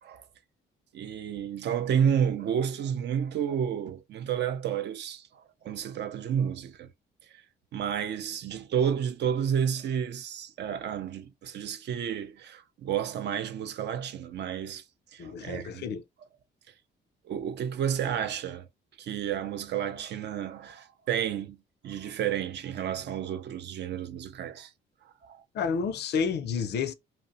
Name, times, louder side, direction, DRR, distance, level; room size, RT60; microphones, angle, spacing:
voice 1, 0.9-6.9 7.3-7.4 7.7-14.8 15.1-15.8 17.2-18.7 19.0-21.6 21.8-24.7 25.0-25.4, right 8 dB, 60° right, 0.4 m, -31 dB
voice 2, 15.2-16.0 25.5-26.9, left 6 dB, 60° left, 0.4 m, -30 dB
2.6 x 2.0 x 2.5 m
cardioid pair, 90°, 20 cm